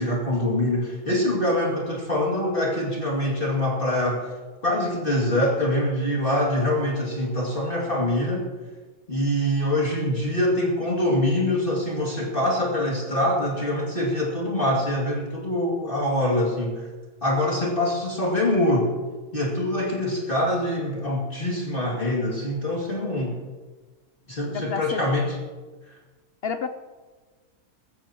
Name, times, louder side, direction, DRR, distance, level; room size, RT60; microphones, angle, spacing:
voice 1, 0.0-4.3 4.6-8.5 9.1-16.8 17.2-18.9 19.3-23.4 24.3-25.3, left 1 dB, 35° left, -3 dB, 2.6 m, -24 dB
voice 2, 24.5-25.0 26.4-26.7, left 6 dB, 65° left, 9 dB, 0.6 m, -29 dB
23.5 x 14.5 x 3.0 m, 1.3 s
omnidirectional pair, 1.7 m